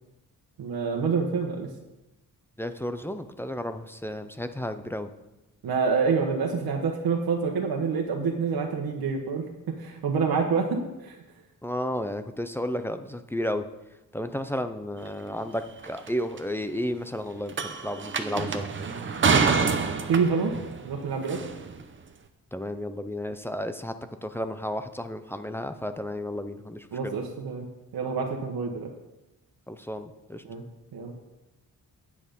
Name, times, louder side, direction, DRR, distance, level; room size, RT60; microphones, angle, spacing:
voice 1, 0.6-1.7 5.6-11.2 20.1-20.5 20.8-21.4 26.9-27.7 27.9-28.9 30.4-30.6 30.9-31.1, right 5 dB, 80° right, 1 dB, 1.3 m, -27 dB
voice 2, 2.6-5.1 11.6-13.6 14.1-18.7 22.5-23.9 24.2-27.1 29.7-30.4, equal, 5° left, 9 dB, 0.4 m, -32 dB
sound 1, 15.1-15.2 15.8-16.1 16.4-16.5 17.5-21.8, right 5 dB, 35° right, 0.7 m, -27 dB
9.5 x 8.5 x 5.2 m, 1.0 s
wide cardioid pair, 155°, 36 cm